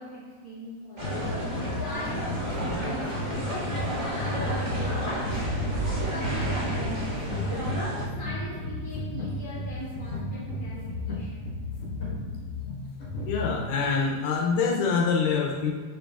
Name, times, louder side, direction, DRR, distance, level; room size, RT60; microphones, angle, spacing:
voice 1, 0.0-1.3 1.8-5.5 5.9-7.6 8.0-11.6, equal, 30° right, -10 dB, 1.1 m, -41 dB
sound 1, 1.0-13.7, left 1 dB, 55° left, 2.2 m, -34 dB
sound 2, 1.0-8.1, equal, 70° right, 0.4 m, -31 dB
sound 3, 5.5-7.1, right 3 dB, 85° right, 2.6 m, -36 dB
voice 2, 13.3-15.7, left 5 dB, 80° left, 0 dB, 2.1 m, -25 dB
6.6 x 6.3 x 2.4 m, 1.6 s
omnidirectional pair, 4.0 m